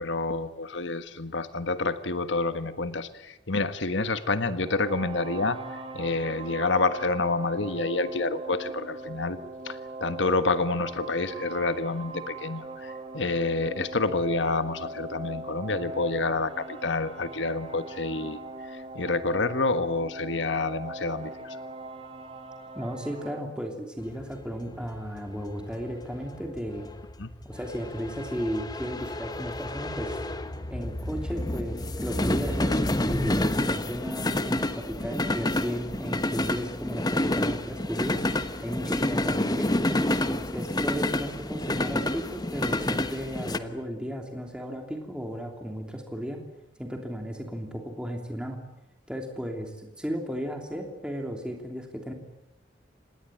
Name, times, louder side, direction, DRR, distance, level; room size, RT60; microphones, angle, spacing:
voice 1, 0.0-9.4 9.6-18.4 18.7-21.6 27.2-27.3, left 3 dB, 80° left, 11 dB, 1.5 m, -28 dB
sound 1, 4.6-23.4, right 2 dB, 30° right, 2.4 m, -40 dB
voice 2, 22.7-26.9 27.4-30.2 30.7-39.7 40.3-46.4 46.8-48.6 49.1-52.1, equal, 5° right, 2 dB, 3.1 m, -35 dB
sound 2, 24.1-43.6, left 1 dB, 20° left, 1.2 m, -29 dB
26.5 x 20.0 x 9.0 m, 0.94 s
head